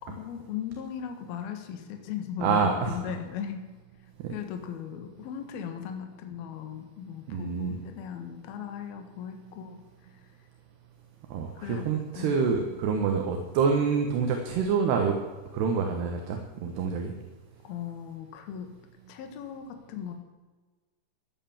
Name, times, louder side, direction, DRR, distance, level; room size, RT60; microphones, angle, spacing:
voice 1, 0.0-2.6 2.9-3.6 4.3-9.8 11.6-11.9 12.1-12.4 17.6-18.7 19.1-20.1, left 8 dB, 65° left, 6 dB, 3.2 m, -37 dB
voice 2, 2.4-2.9 4.2-4.3 7.3-7.8 11.3-15.2 15.5-17.1, right 5 dB, 70° right, 3 dB, 3.3 m, -27 dB
15.0 x 11.0 x 7.3 m, 1.3 s
omnidirectional pair, 5.2 m